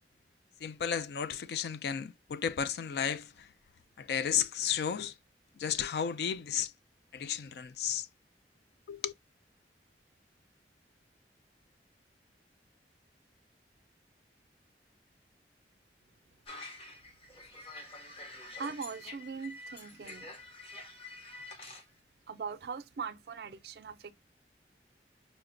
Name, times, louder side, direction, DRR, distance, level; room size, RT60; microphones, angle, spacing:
voice 1, 0.6-3.5 4.0-5.1 5.6-6.7 7.1-8.1 8.9-9.1, left 8 dB, 65° left, 0.3 m, -33 dB
sound 1, 16.5-21.8, left 2 dB, 35° left, 0.8 m, -47 dB
voice 2, 18.6-20.4 22.3-24.1, right 5 dB, 60° right, 0.4 m, -41 dB
4.8 x 2.1 x 2.5 m
head